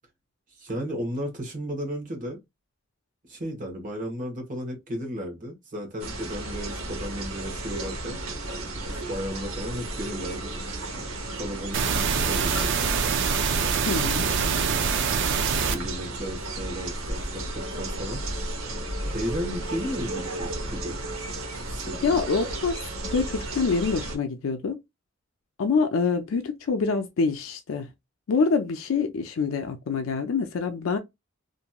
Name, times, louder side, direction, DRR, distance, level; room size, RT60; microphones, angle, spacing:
voice 1, 0.5-2.4 3.3-8.2 8.9-10.5 11.0-11.1 11.3-13.2 14.2-15.2 15.5-18.2 19.1-21.3 21.7-22.2, equal, 40° right, 1.1 m, -34 dB
sound 1, 6.0-24.2, right 2 dB, 80° right, 0.9 m, -34 dB
sound 2, 11.7-15.7, right 6 dB, 60° right, 0.5 m, -24 dB
voice 2, 13.9-14.3 22.0-22.8 23.1-24.8 25.6-27.9 28.3-31.0, left 4 dB, 70° left, 0.4 m, -25 dB
2.9 x 2.5 x 2.2 m
head